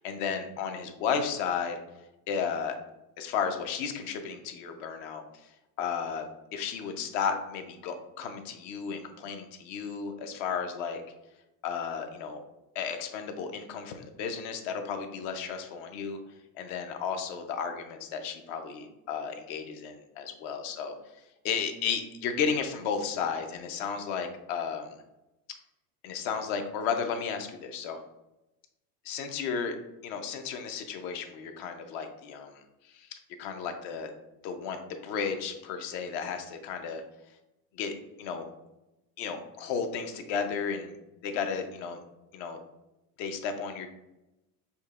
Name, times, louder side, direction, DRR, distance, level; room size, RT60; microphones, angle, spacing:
voice 1, 0.0-1.8 2.3-2.8 3.2-5.2 5.8-6.2 6.5-11.0 11.6-12.4 12.7-16.2 16.6-20.9 21.4-24.9 26.0-28.0 29.0-29.8 30.0-32.6 32.9-34.1 34.4-37.0 37.7-37.9 38.2-38.4 39.2-41.0 41.2-42.0 42.3-42.6 43.2-43.9, left 6 dB, 65° left, 6 dB, 0.7 m, -33 dB
5.2 x 2.2 x 2.4 m, 0.96 s
supercardioid pair, 120°, 45 cm